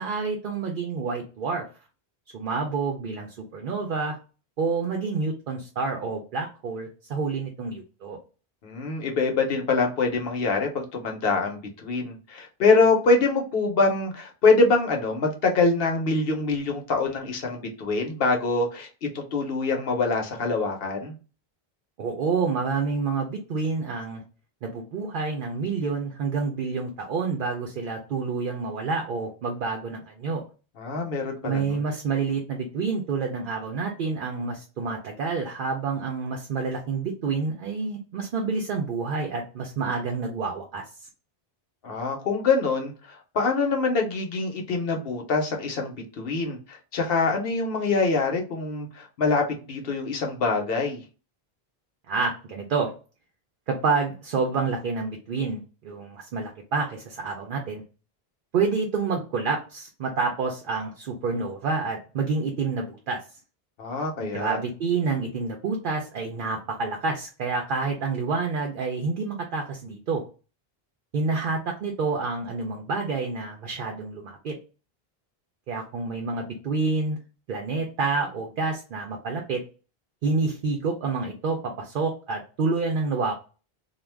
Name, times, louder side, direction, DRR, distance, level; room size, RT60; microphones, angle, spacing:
voice 1, 0.0-1.7 2.3-4.2 4.6-8.2 22.0-24.2 24.6-30.4 31.4-40.8 52.1-52.9 53.7-57.8 58.5-63.2 64.2-70.2 71.1-74.6 75.7-77.2 77.5-79.6 80.2-83.3, right 4 dB, 60° right, 0.7 m, -28 dB
voice 2, 8.6-18.9 19.1-21.1 30.8-31.8 41.8-51.0 63.8-64.6, left 3 dB, 70° left, 0.9 m, -24 dB
2.4 x 2.1 x 3.2 m
omnidirectional pair, 1.0 m